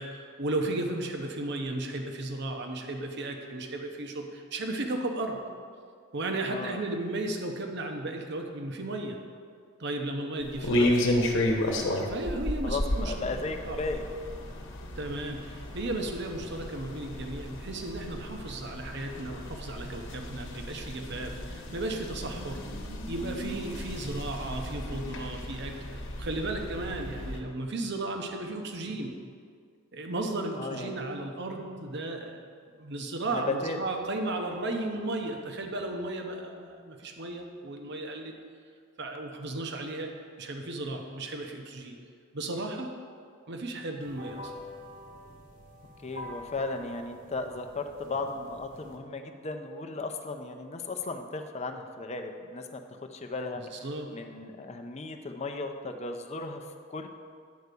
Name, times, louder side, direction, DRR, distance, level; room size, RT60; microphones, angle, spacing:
voice 1, 0.0-5.4 6.1-9.2 9.8-10.9 11.7-13.3 13.7-13.8 15.0-29.1 29.9-32.5 32.8-38.3 39.0-40.1 40.4-42.0 42.3-42.9 43.5-44.5 53.8-54.1, right 2 dB, 55° right, 3 dB, 0.9 m, -35 dB
voice 2, 6.5-6.8 10.5-10.9 12.6-14.1 28.9-29.2 30.5-31.1 33.3-33.8 46.0-53.8 54.1-57.1, left 3 dB, 30° left, 5 dB, 0.6 m, -36 dB
sound 1, 10.4-27.4, left 1 dB, 60° left, 1.1 m, -33 dB
sound 2, 44.0-49.0, equal, 40° right, 1.1 m, -46 dB
9.5 x 4.7 x 6.8 m, 2.1 s
head